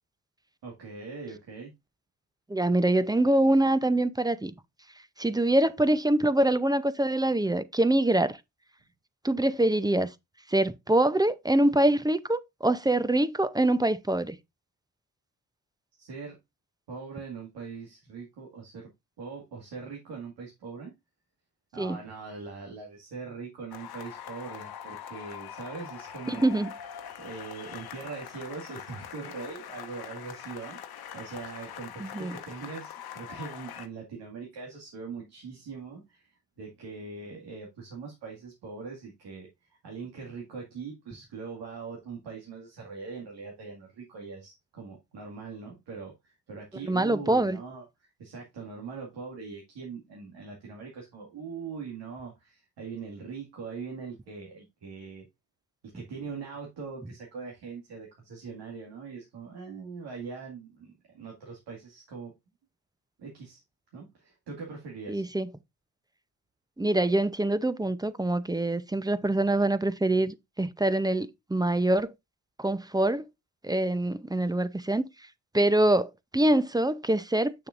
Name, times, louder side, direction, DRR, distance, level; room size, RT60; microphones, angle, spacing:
voice 1, 0.6-1.7 16.0-16.4 16.9-18.9 19.2-20.9 21.7-26.6 27.2-30.8 31.1-55.3 55.8-62.3 63.2-63.6 63.9-65.2, right 5 dB, 70° right, 2.2 m, -41 dB
voice 2, 2.5-4.5 5.2-8.4 9.2-10.1 10.5-14.4 21.8-22.0 26.3-26.7 32.0-32.3 46.8-47.6 65.1-65.5 66.8-72.1 72.6-73.2 73.6-75.1 75.5-77.7, right 1 dB, 10° right, 0.6 m, -25 dB
sound 1, 23.7-33.9, left 9 dB, 60° left, 1.0 m, -43 dB
7.1 x 6.6 x 2.5 m
supercardioid pair, 50°, 41 cm